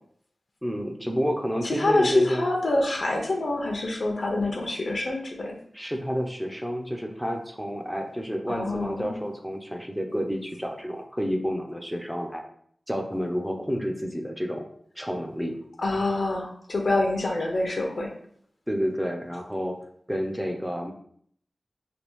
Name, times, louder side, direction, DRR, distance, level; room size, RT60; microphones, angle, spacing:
voice 1, 0.6-2.5 5.7-12.4 12.9-14.7 15.0-15.6 18.7-19.8 20.1-20.9, equal, 5° right, 3 dB, 0.5 m, -29 dB
voice 2, 1.6-5.6 8.5-9.2 15.8-18.1, left 2 dB, 70° left, 1 dB, 0.6 m, -26 dB
3.3 x 2.3 x 3.0 m, 0.64 s
wide cardioid pair, 75°, 0 cm